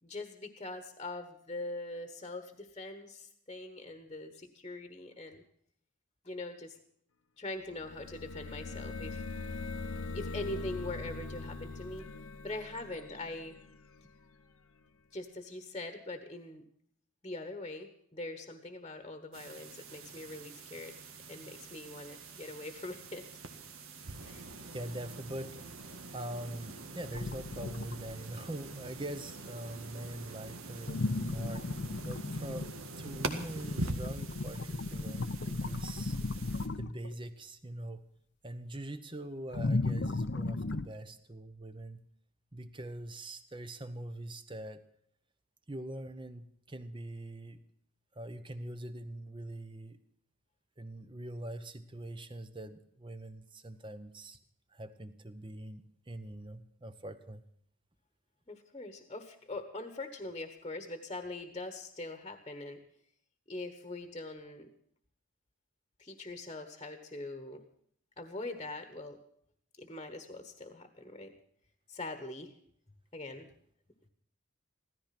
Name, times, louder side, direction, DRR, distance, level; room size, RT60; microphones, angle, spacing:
voice 1, 0.0-5.4 6.2-6.8 7.4-9.2 10.1-12.1 12.4-13.5 15.1-16.6 17.2-21.0 21.3-23.3 24.2-24.5 35.7-35.8 58.5-62.8 63.5-64.7 66.0-67.6 68.2-69.2 69.8-71.3 71.9-72.5 73.1-73.5, left 2 dB, 25° left, 7 dB, 1.3 m, -42 dB
sound 1, 7.7-14.4, left 3 dB, 80° left, 1.0 m, -42 dB
sound 2, 19.3-36.7, right 3 dB, 80° right, 1.8 m, -44 dB
voice 2, 24.7-25.6 26.1-32.7 33.0-36.2 36.8-38.0 38.4-42.0 42.5-44.8 45.7-47.6 48.1-50.0 50.8-54.4 54.7-57.4, right 1 dB, 25° right, 11 dB, 0.9 m, -43 dB
sound 3, 27.1-28.2 30.9-37.1 39.5-40.9, left 2 dB, 55° left, 0.6 m, -35 dB
16.0 x 14.0 x 5.9 m, 0.65 s
head